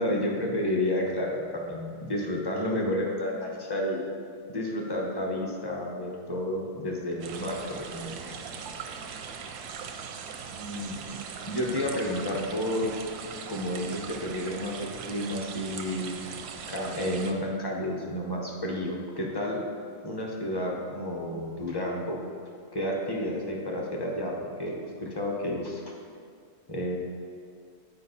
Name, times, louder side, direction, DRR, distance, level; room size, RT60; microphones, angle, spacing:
voice 1, 0.0-4.0 4.5-8.3 9.0-9.2 10.5-11.0 11.5-12.9 13.5-16.2 16.7-19.6 20.0-22.2 22.7-24.3 24.6-25.8 26.7-27.0, left 1 dB, 20° left, -2 dB, 0.8 m, -31 dB
sound 1, 7.2-17.3, right 6 dB, 90° right, 1.2 m, -40 dB
8.0 x 5.2 x 4.1 m, 2.3 s
omnidirectional pair, 1.6 m